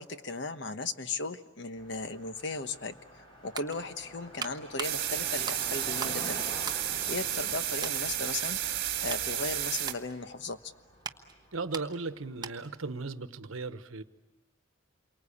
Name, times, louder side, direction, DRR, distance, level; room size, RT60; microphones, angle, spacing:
voice 1, 0.0-2.9 3.4-6.4 7.1-8.6 9.0-10.7, left 3 dB, 55° left, 10 dB, 1.2 m, -36 dB
Car passing by, 1.8-12.9, equal, 25° left, 4.0 m, -49 dB
sound 1, 3.2-6.2 6.6-7.5 7.8-8.1 8.6-12.8 13.1-13.3, right 5 dB, 20° right, 1.1 m, -43 dB
sound 2, 4.8-9.9, right 11 dB, 50° right, 1.9 m, -32 dB
voice 2, 11.5-14.0, right 3 dB, 80° right, 12 dB, 1.1 m, -36 dB
28.5 x 24.0 x 8.6 m, 1.1 s
head